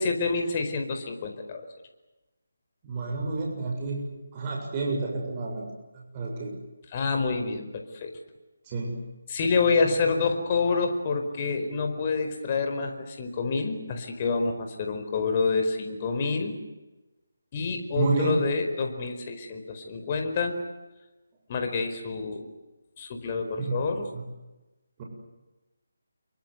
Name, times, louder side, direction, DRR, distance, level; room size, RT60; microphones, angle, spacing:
voice 1, 0.0-1.7 6.9-8.2 9.3-16.6 17.5-20.6 21.5-22.5 23.0-24.1, left 4 dB, 30° left, 5 dB, 4.8 m, -27 dB
voice 2, 2.8-5.7 5.9-6.5 8.7-9.0 18.0-18.4 23.6-23.8 24.1-24.2 25.0-25.1, right 3 dB, 25° right, -1 dB, 7.3 m, -30 dB
28.0 x 24.0 x 8.2 m, 1.1 s
figure-of-eight pair, 160°, 0 cm